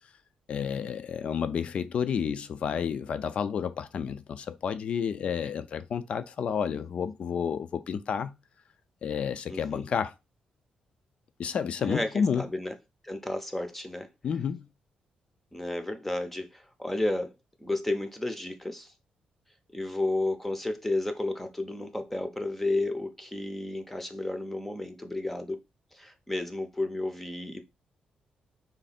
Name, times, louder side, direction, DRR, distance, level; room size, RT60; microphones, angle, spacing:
voice 1, 0.5-8.3 9.0-10.1 11.4-12.5 14.2-14.6, left 7 dB, 50° left, 0.5 m, -30 dB
voice 2, 9.5-9.9 11.8-12.7 13.0-14.1 15.5-17.3 17.6-18.9 19.7-25.6 25.9-27.6, left 2 dB, 10° left, 0.6 m, -32 dB
3.9 x 3.2 x 4.2 m
wide cardioid pair, 160°, 3 cm